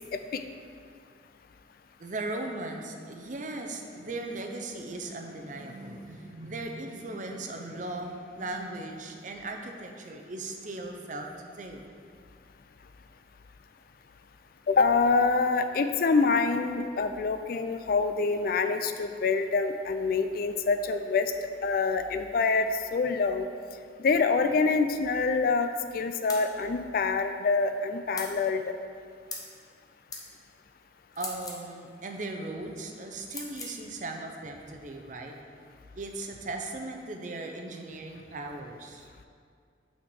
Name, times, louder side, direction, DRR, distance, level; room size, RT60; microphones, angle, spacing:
voice 1, 0.1-0.4 14.7-21.3 21.6-23.5 24.0-28.6, left 4 dB, 50° left, 8 dB, 0.3 m, -26 dB
voice 2, 2.0-11.9 31.2-35.3 35.9-39.1, right 2 dB, 45° right, 3 dB, 0.6 m, -38 dB
sound 1, 26.3-26.5 28.2-28.3 29.3-29.5 30.1-30.3 31.1-31.6 33.3-33.8, left 3 dB, 20° left, 0.8 m, -38 dB
5.9 x 4.3 x 6.2 m, 2.2 s
head